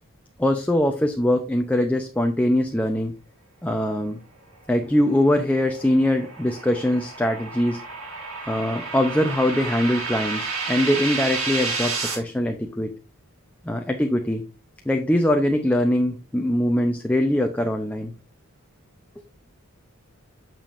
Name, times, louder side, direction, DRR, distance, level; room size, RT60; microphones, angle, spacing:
voice 1, 0.4-3.1 3.6-4.2 4.7-7.8 8.5-12.9 13.6-14.4 14.9-18.1, left 1 dB, 5° left, 4 dB, 0.6 m, -22 dB
sound 1, 5.3-12.1, right 4 dB, 70° right, 2.6 m, -31 dB
8.6 x 7.0 x 2.5 m, 0.32 s
head